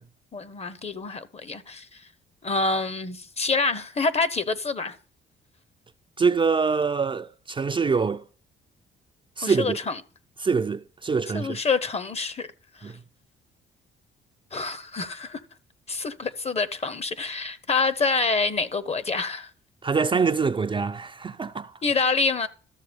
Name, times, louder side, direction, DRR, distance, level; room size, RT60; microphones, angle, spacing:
voice 1, 0.3-2.1 2.4-5.0 9.4-10.0 11.3-12.5 12.8-12.9 14.5-15.4 15.9-19.5 21.8-22.5, left 4 dB, 30° left, 0.8 m, -27 dB
voice 2, 6.2-8.2 9.4-9.8 10.4-11.6 12.8-13.0 19.8-21.7, right 5 dB, 25° right, 0.5 m, -24 dB
13.0 x 6.8 x 5.2 m
cardioid pair, 90°, 20 cm